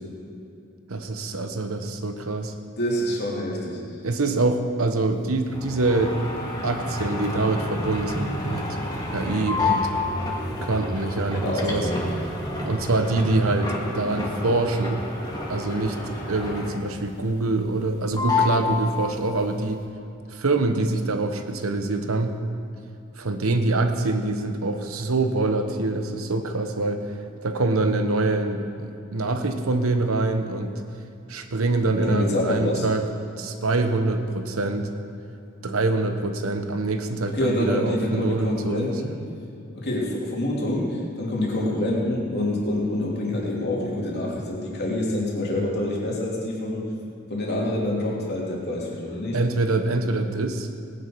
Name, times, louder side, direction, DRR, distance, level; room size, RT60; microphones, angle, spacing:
voice 1, 0.9-2.5 4.0-8.7 9.1-9.9 10.6-11.9 12.7-15.0 15.5-16.0 16.3-19.8 20.3-22.4 23.2-27.1 27.4-30.8 31.3-33.1 33.4-34.9 35.6-38.9 49.3-50.7, right 2 dB, 75° right, 7 dB, 1.1 m, -25 dB
voice 2, 2.8-3.8 11.3-12.0 32.0-32.9 37.3-39.1 39.7-46.8 47.3-49.4, left 1 dB, 50° left, -3 dB, 2.9 m, -26 dB
sound 1, 5.5-17.0 17.3-17.9 18.2-19.5, left 2 dB, 20° left, 1.9 m, -29 dB
18.5 x 10.0 x 4.7 m, 2.6 s
head